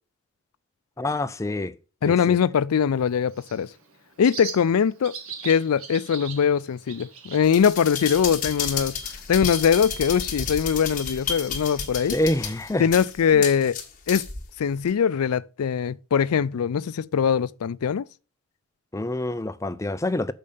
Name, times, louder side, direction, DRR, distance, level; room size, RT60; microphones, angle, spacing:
voice 1, 1.0-1.8 2.0-2.4 12.1-12.8 13.3-13.4 18.9-20.3, left 1 dB, 15° left, 0.4 m, -27 dB
voice 2, 2.0-3.7 4.2-5.2 5.4-9.0 9.3-12.2 12.8-13.8 14.1-14.3 14.6-18.0, left 7 dB, 80° left, 0.4 m, -22 dB
Bird, 2.9-11.9, right 6 dB, 70° right, 1.8 m, -43 dB
sound 1, 7.4-14.4 14.9-15.0, left 6 dB, 35° left, 1.4 m, -31 dB
6.6 x 5.2 x 6.8 m
head